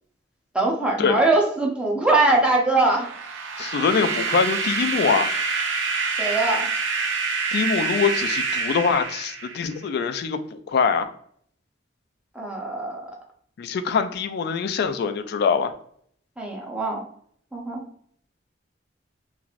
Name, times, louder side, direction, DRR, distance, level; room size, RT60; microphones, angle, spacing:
voice 1, 0.5-3.1 6.2-6.7 12.3-13.0 16.4-17.0 17.5-17.8, right 2 dB, 5° right, -2 dB, 0.6 m, -22 dB
sound 1, 2.8-9.8, right 4 dB, 90° right, 0.5 m, -27 dB
voice 2, 3.6-5.3 7.5-11.1 13.6-15.7, left 5 dB, 60° left, 9 dB, 0.3 m, -23 dB
3.0 x 2.5 x 2.4 m, 0.62 s
head